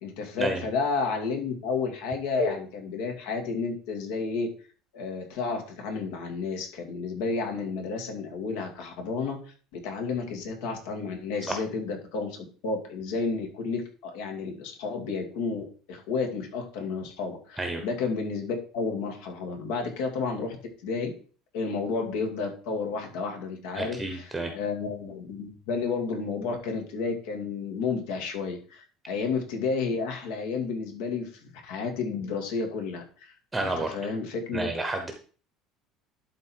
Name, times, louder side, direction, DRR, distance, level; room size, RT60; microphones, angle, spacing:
voice 1, 0.0-4.5 4.9-9.4 9.7-20.6 20.8-21.1 21.5-34.7, left 4 dB, 80° left, 3 dB, 2.4 m, -31 dB
voice 2, 23.8-24.5 33.5-33.9 34.5-35.1, right 2 dB, 5° right, 5 dB, 0.8 m, -30 dB
12.0 x 4.1 x 4.5 m, 0.40 s
cardioid pair, 175°, 0 cm